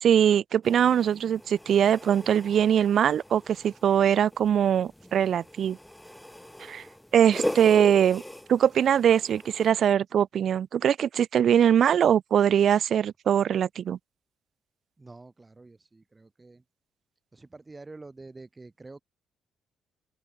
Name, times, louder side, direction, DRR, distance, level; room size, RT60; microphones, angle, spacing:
voice 1, 0.0-5.8 6.7-6.8 7.1-8.2 8.5-14.0, right 9 dB, 60° right, 0.4 m, -22 dB
sound 1, 0.6-9.7, left 1 dB, 5° left, 2.2 m, -39 dB
voice 2, 15.0-16.6 17.3-19.0, right 3 dB, 20° right, 5.7 m, -47 dB
open air
cardioid pair, 90°, 0 cm